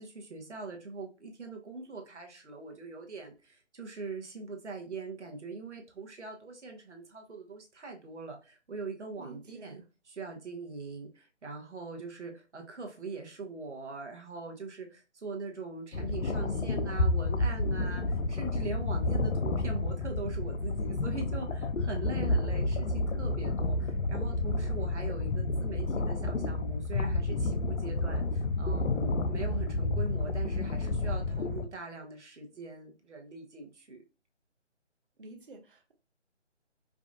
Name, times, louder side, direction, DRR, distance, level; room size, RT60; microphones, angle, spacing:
voice 1, 0.0-34.0, right 3 dB, 70° right, 1.2 m, -42 dB
voice 2, 9.2-9.8 30.9-31.6 35.2-35.9, right 2 dB, 45° right, 0.9 m, -51 dB
sound 1, 15.9-31.7, left 2 dB, 80° left, 0.6 m, -30 dB
4.9 x 2.4 x 2.5 m
figure-of-eight pair, 150°, 36 cm